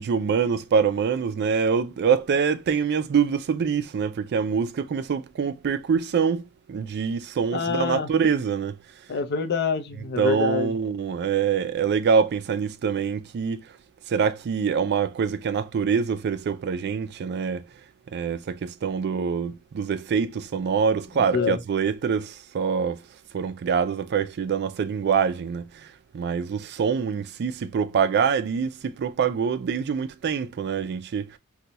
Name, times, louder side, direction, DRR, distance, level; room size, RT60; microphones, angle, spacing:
voice 1, 0.0-8.8 10.2-13.7 14.1-17.7 18.1-23.0 23.3-31.4, right 6 dB, 50° right, 0.3 m, -25 dB
voice 2, 7.5-8.1 9.1-10.7 21.3-21.6, left 5 dB, 50° left, 0.5 m, -26 dB
2.8 x 2.2 x 3.9 m
head